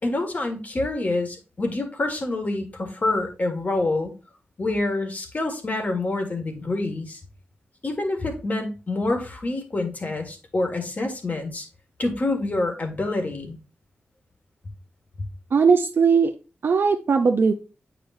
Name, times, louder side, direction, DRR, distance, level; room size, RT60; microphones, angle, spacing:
voice 1, 0.0-4.1 4.6-7.2 7.8-11.7 12.0-13.6, left 2 dB, 40° left, 4 dB, 1.8 m, -27 dB
voice 2, 15.5-16.3 16.6-17.5, right 5 dB, 65° right, 5 dB, 0.5 m, -18 dB
8.8 x 4.9 x 2.6 m, 0.32 s
cardioid pair, 80°, 4 cm